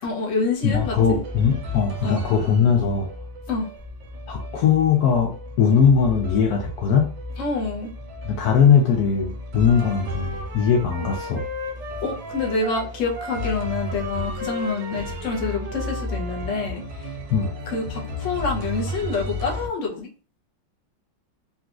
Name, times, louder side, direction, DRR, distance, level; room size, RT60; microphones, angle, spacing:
voice 1, 0.0-1.2 2.0-2.2 3.5-3.7 7.4-7.9 12.0-17.1 17.7-20.1, left 4 dB, 60° left, -1 dB, 0.8 m, -27 dB
voice 2, 0.6-3.1 4.3-7.1 8.2-11.4 17.3-17.5, left 7 dB, 85° left, 2 dB, 0.8 m, -20 dB
sound 1, 0.7-19.7, left 1 dB, 75° right, 1.4 m, -34 dB
Wind instrument woodwind instrument, 9.6-16.6, equal, 55° right, 0.7 m, -36 dB
4.0 x 2.3 x 2.4 m, 0.37 s
omnidirectional pair, 2.2 m